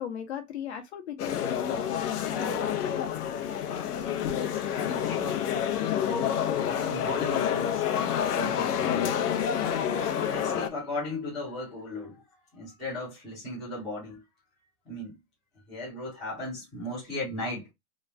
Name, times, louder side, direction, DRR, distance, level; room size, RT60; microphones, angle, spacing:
voice 1, 0.0-2.8 4.1-4.4, left 8 dB, 45° left, 0.9 m, -37 dB
sound 1, 1.2-10.7, left 9 dB, 85° left, 0.7 m, -28 dB
voice 2, 4.7-5.5 6.0-7.9 8.2-9.4 10.1-12.2 12.5-14.2 14.9-15.1 15.7-17.7, left 2 dB, ahead, 0.5 m, -37 dB
3.0 x 2.3 x 3.2 m
hypercardioid pair, 170°, 45 cm